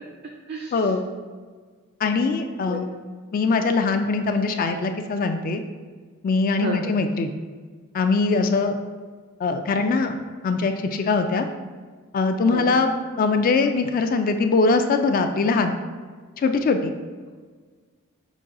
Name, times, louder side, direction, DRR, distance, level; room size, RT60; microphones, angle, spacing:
voice 1, 0.7-1.0 2.0-2.9 3.3-5.6 6.2-7.3 7.9-8.8 9.4-10.2 10.4-11.5 12.1-15.7 16.4-16.9, left 4 dB, 40° left, 7 dB, 0.3 m, -22 dB
voice 2, 6.6-6.9 12.5-12.7, right 3 dB, 50° right, 1 dB, 0.4 m, -30 dB
6.1 x 2.3 x 3.7 m, 1.5 s
head